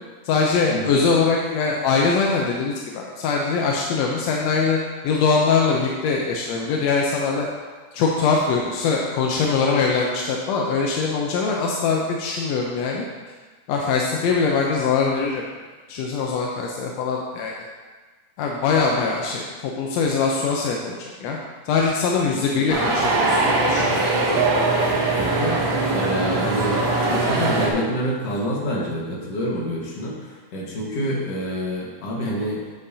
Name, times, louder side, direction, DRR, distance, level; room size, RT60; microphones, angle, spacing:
voice 1, 0.3-4.8 5.0-7.5 7.9-13.0 13.7-15.4 15.9-17.5 18.4-21.4 21.7-24.1, left 4 dB, 75° left, -1 dB, 1.6 m, -22 dB
sound 1, 22.7-27.7, right 2 dB, 70° right, 1.2 m, -21 dB
voice 2, 25.2-32.6, equal, 60° left, -4 dB, 2.3 m, -27 dB
8.6 x 7.6 x 2.7 m, 1.4 s
omnidirectional pair, 3.6 m